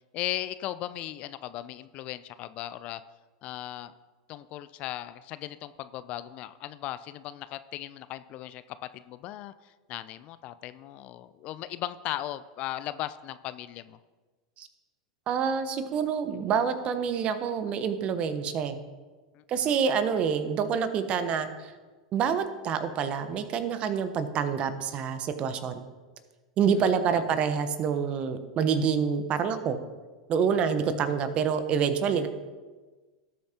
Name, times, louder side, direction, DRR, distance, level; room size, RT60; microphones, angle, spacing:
voice 1, 0.1-3.0 3.4-3.9 4.3-9.5 9.9-14.0 19.3-19.7 27.1-27.2, left 14 dB, 45° left, 14 dB, 0.5 m, -37 dB
voice 2, 15.3-18.8 19.5-21.7 22.1-25.9 26.6-29.8 30.3-32.3, right 7 dB, 35° right, 10 dB, 1.1 m, -27 dB
18.5 x 8.3 x 3.0 m, 1.3 s
figure-of-eight pair, 90°, 3 cm